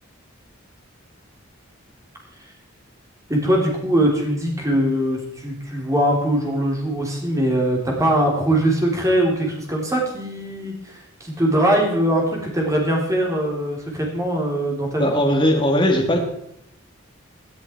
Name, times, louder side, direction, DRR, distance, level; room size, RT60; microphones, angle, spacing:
voice 1, 3.3-15.1, right 1 dB, 15° right, 0 dB, 3.4 m, -21 dB
voice 2, 15.0-16.2, left 1 dB, 25° left, 1 dB, 1.8 m, -18 dB
17.5 x 9.9 x 4.5 m, 0.77 s
head